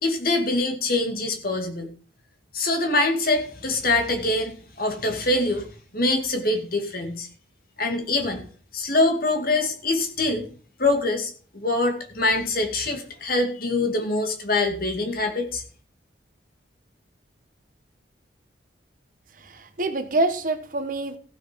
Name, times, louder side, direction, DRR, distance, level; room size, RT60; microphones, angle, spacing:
voice 1, 0.0-1.9 2.5-5.7 5.9-7.3 7.8-8.4 8.7-10.5 10.8-15.6, left 2 dB, 50° left, 2.5 m, -24 dB
voice 2, 19.4-21.2, right 2 dB, 45° right, 1.3 m, -26 dB
15.0 x 6.5 x 5.3 m
head